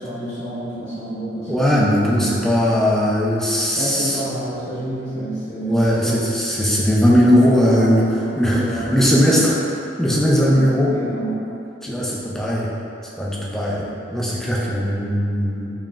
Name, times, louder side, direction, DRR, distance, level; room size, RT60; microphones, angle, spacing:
voice 1, 0.0-1.8 3.7-6.2 6.5-6.7 7.2-9.4 10.3-10.6 10.9-11.4 13.7-13.9, right 1 dB, 45° left, -11 dB, 0.9 m, -29 dB
voice 2, 1.5-4.2 5.7-8.1 8.3-9.6 10.0-11.0 11.8-12.7 13.2-15.7, equal, ahead, -5 dB, 0.4 m, -18 dB
3.9 x 3.2 x 2.4 m, 2.7 s
head